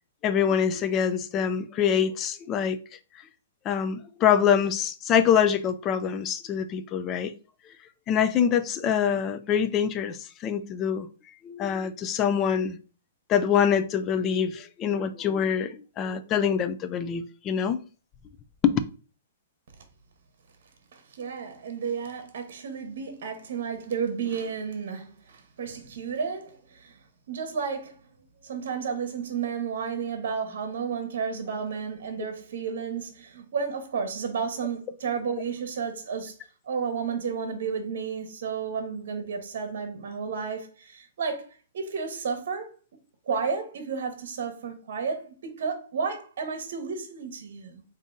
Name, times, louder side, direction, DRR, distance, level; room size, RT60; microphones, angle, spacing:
voice 1, 0.2-2.8 3.7-7.3 8.1-11.1 11.4-12.8 13.3-17.8 18.6-18.8, left 8 dB, 25° left, 0.3 m, -25 dB
voice 2, 20.9-27.0 27.3-28.0 28.4-36.4 36.6-41.5 41.7-42.7 43.3-47.8, right 6 dB, 65° right, 0.9 m, -32 dB
3.6 x 2.6 x 3.8 m
hypercardioid pair, 150°, 0 cm